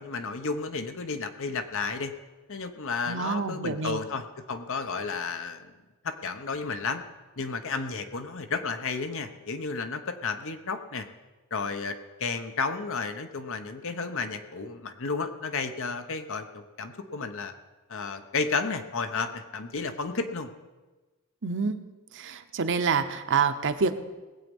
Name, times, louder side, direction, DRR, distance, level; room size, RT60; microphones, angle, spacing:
voice 1, 0.0-2.1 2.5-5.7 6.0-7.0 7.4-11.1 11.5-17.5 17.9-20.5, left 4 dB, 65° left, 9 dB, 1.0 m, -32 dB
voice 2, 3.1-4.0 21.4-21.7 22.1-24.0, right 5 dB, 60° right, 9 dB, 0.9 m, -27 dB
19.0 x 8.3 x 5.4 m, 1.2 s
head